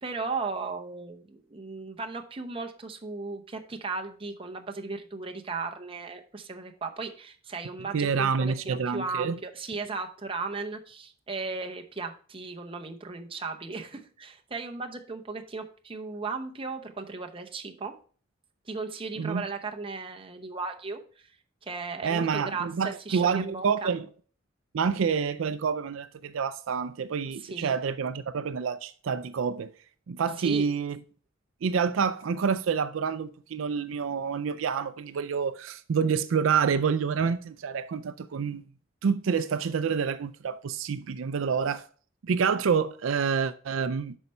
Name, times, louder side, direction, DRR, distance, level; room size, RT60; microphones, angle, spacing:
voice 1, 0.0-17.9 18.7-21.3 21.6-23.9 27.4-27.8 30.4-30.7, right 4 dB, 25° right, 0.8 m, -36 dB
voice 2, 7.9-9.4 19.2-19.4 22.0-24.1 24.7-29.7 30.1-31.0 31.6-38.6 39.0-41.8 42.2-44.2, right 6 dB, 75° right, 0.4 m, -28 dB
8.0 x 5.5 x 4.2 m
head